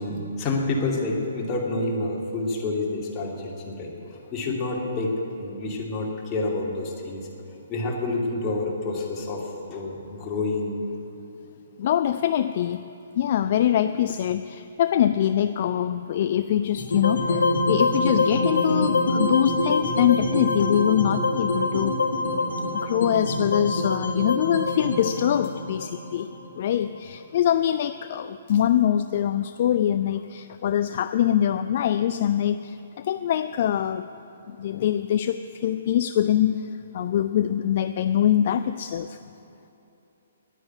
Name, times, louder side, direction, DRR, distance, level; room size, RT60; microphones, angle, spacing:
voice 1, 0.0-7.3 7.7-10.7, left 2 dB, 25° left, -2 dB, 2.5 m, -28 dB
voice 2, 11.8-12.8 13.2-21.9 22.8-26.3 26.5-34.1 34.5-39.2, left 10 dB, 45° left, 11 dB, 0.3 m, -24 dB
sound 1, 16.8-27.0, left 2 dB, 60° left, 1.9 m, -25 dB
10.0 x 9.7 x 9.4 m, 2.9 s
figure-of-eight pair, 130°, 0 cm